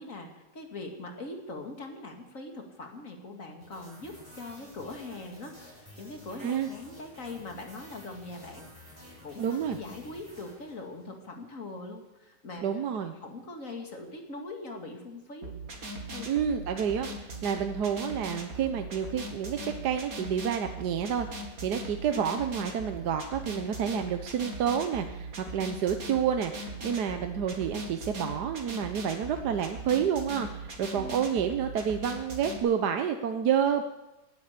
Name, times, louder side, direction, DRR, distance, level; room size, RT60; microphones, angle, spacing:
voice 1, 0.0-12.8 13.2-15.5 16.1-16.4 30.9-31.4, left 2 dB, 45° left, 3 dB, 2.6 m, -42 dB
sound 1, 3.6-11.2, left 1 dB, 10° right, 7.4 m, -51 dB
voice 2, 9.4-9.8 12.6-13.1 16.3-26.5 26.8-33.8, right 8 dB, 70° right, 7 dB, 1.4 m, -29 dB
sound 2, 15.4-32.6, right 2 dB, 55° right, 2.5 m, -40 dB
17.0 x 10.0 x 8.2 m, 1.0 s
omnidirectional pair, 1.9 m